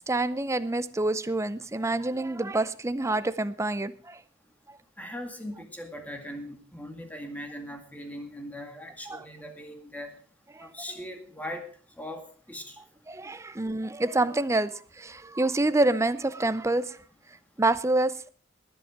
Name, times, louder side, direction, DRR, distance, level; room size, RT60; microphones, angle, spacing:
voice 1, 0.1-4.2 9.1-9.2 13.1-17.0 17.6-18.3, right 2 dB, 15° right, 0.6 m, -27 dB
voice 2, 5.0-10.2 10.6-11.7 12.0-12.8, left 1 dB, 10° left, 2.0 m, -40 dB
20.0 x 7.9 x 5.0 m
head